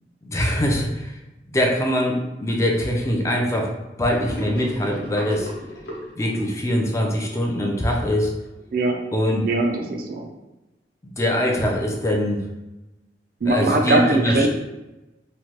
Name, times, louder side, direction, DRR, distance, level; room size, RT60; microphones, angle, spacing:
voice 1, 0.2-1.1 1.5-3.7 4.0-5.5 6.2-8.3 9.1-9.4 11.2-12.4 13.5-14.5, equal, 15° left, 0 dB, 0.4 m, -22 dB
Gurgling / Sink (filling or washing), 4.2-8.6, equal, 65° left, 0.9 m, -36 dB
voice 2, 9.4-10.3 13.4-14.5, right 2 dB, 55° right, 3 dB, 0.4 m, -21 dB
3.1 x 2.2 x 2.9 m, 0.99 s
head